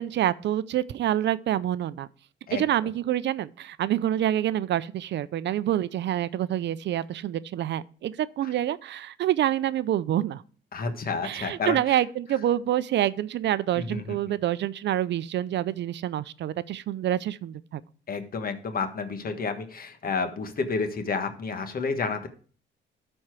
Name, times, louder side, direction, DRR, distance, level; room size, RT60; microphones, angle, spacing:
voice 1, 0.0-2.1 2.5-10.4 11.2-17.8, right 12 dB, 65° right, 0.5 m, -27 dB
voice 2, 2.5-2.9 8.4-8.5 10.7-12.0 13.7-14.2 18.1-22.3, left 4 dB, 45° left, 1.4 m, -30 dB
12.5 x 4.4 x 4.7 m
cardioid pair, 90°, 20 cm